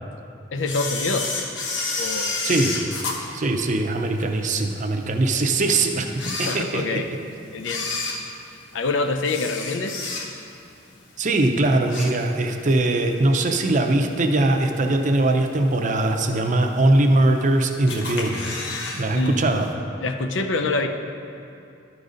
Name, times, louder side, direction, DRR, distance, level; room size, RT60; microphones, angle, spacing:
voice 1, 0.5-1.3 2.0-2.4 6.5-7.1 7.5-7.9 8.7-10.0 19.1-19.6 20.0-20.9, left 3 dB, 90° left, 6 dB, 0.6 m, -26 dB
Camera, 0.6-4.2 4.7-4.8 5.5-5.6 6.1-7.1 7.6-10.6 10.9-11.2 11.6-12.6 13.0-13.1 14.0-14.1 14.7-15.1 15.5-15.6 15.8-15.9 16.1-16.2 16.9-17.5 17.9-19.0 19.3-19.4 19.7-19.8, left 3 dB, 70° left, 1.1 m, -30 dB
voice 2, 2.4-2.8 3.3-6.1 6.4-7.0 11.2-18.5 18.9-19.7, right 2 dB, 40° right, 4 dB, 0.6 m, -21 dB
12.0 x 4.0 x 5.1 m, 2.6 s
head